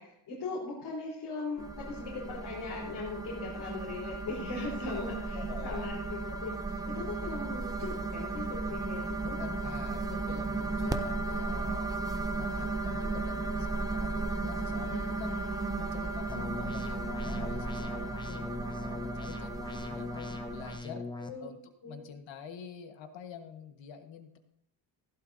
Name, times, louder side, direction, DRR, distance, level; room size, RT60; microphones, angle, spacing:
voice 1, 0.0-9.3 10.0-10.4 21.2-21.5 21.8-22.0, left 3 dB, 60° left, -5 dB, 3.9 m, -39 dB
sound 1, 1.6-20.8, right 3 dB, 10° right, 0.5 m, -35 dB
voice 2, 5.3-5.9 9.2-12.0 12.3-15.4 15.8-21.1 21.4-21.6 21.8-24.4, left 7 dB, 90° left, 7 dB, 1.5 m, -46 dB
sound 2, 14.0-20.4, right 2 dB, 35° right, 5.2 m, -58 dB
sound 3, 16.3-21.3, left 3 dB, 10° left, 0.8 m, -40 dB
15.5 x 12.0 x 2.7 m, 0.73 s
cardioid pair, 165°, 44 cm